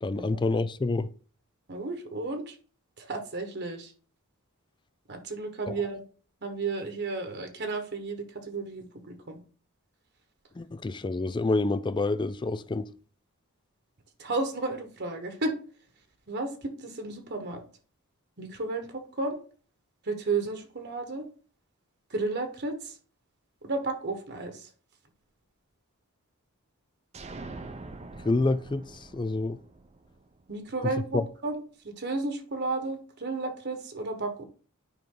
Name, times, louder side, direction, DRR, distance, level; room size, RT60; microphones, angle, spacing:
voice 1, 0.0-1.1 10.6-12.9 28.3-28.8 29.1-29.6 31.1-31.2, left 3 dB, 20° left, 0.4 m, -27 dB
voice 2, 1.7-2.6 3.0-3.9 5.1-6.0 6.4-9.4 14.2-15.5 16.3-17.6 18.4-19.4 20.0-21.3 22.1-23.0 23.6-24.7 30.5-34.4, right 3 dB, 50° right, 1.3 m, -33 dB
sound 1, 27.1-30.8, right 3 dB, 30° right, 0.7 m, -44 dB
9.4 x 5.2 x 3.8 m
head